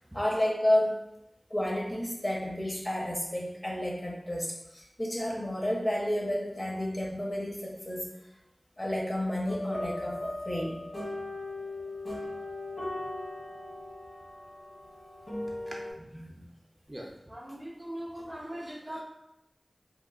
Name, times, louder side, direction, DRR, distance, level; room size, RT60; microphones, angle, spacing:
voice 1, 0.1-1.0 1.5-8.1 8.8-10.2 10.4-10.8, left 1 dB, 40° left, -4 dB, 0.8 m, -31 dB
sound 1, 9.4-15.9, left 1 dB, 60° left, 1.4 m, -38 dB
voice 2, 15.7-16.4 16.9-19.0, equal, 20° right, -2 dB, 0.4 m, -41 dB
3.0 x 2.0 x 2.3 m, 0.88 s
wide cardioid pair, 50°, 0 cm